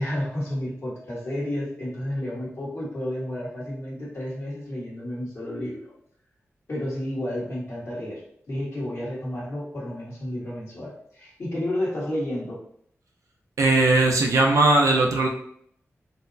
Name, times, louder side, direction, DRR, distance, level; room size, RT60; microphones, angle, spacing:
voice 1, 0.0-5.8 6.7-8.2 8.5-12.6, left 1 dB, 55° left, -7 dB, 1.4 m, -31 dB
voice 2, 13.6-15.3, right 2 dB, 90° right, 1 dB, 0.5 m, -19 dB
3.9 x 2.0 x 2.6 m, 0.67 s
wide cardioid pair, 120°, 5 cm